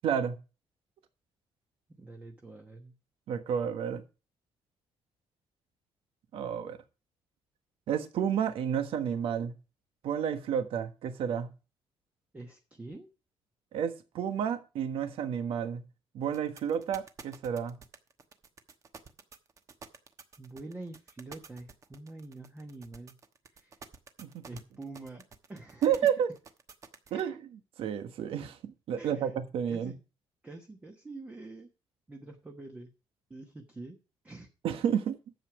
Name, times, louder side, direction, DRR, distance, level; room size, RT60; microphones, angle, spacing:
voice 1, 0.0-0.4 3.3-4.0 6.3-6.8 7.9-9.5 10.0-11.5 13.7-15.8 16.1-17.8 24.2-24.4 25.8-26.3 27.1-29.9 34.6-35.2, right 8 dB, 70° right, 1.3 m, -31 dB
voice 2, 2.0-2.9 12.3-13.1 20.4-23.2 23.5-23.8 24.5-25.2 25.5-26.0 27.1-27.3 29.0-29.4 29.7-30.0 30.4-31.7 32.1-32.9 33.3-34.0 34.2-34.5, right 2 dB, 15° right, 1.1 m, -46 dB
sound 1, 16.3-27.2, right 5 dB, 35° right, 1.1 m, -50 dB
11.0 x 7.6 x 4.8 m
cardioid pair, 170°, 10 cm